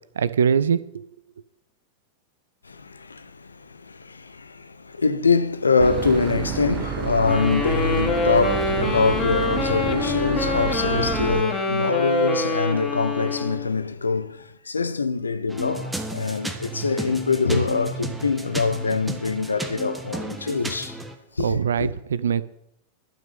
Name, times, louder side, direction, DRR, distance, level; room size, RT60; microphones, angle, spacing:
voice 1, 0.2-1.0 20.4-20.5 21.4-22.4, right 7 dB, 65° right, 0.6 m, -22 dB
voice 2, 2.7-21.0 21.4-21.9, left 4 dB, 75° left, 0.7 m, -24 dB
Boat Water vehicle / Engine, 5.8-11.4, right 9 dB, 30° right, 1.0 m, -29 dB
Wind instrument woodwind instrument, 7.2-13.7, left 3 dB, 20° left, 2.6 m, -26 dB
sound 1, 15.5-21.1, right 1 dB, 10° right, 1.4 m, -33 dB
12.0 x 6.1 x 8.4 m
figure-of-eight pair, 90°, 0 cm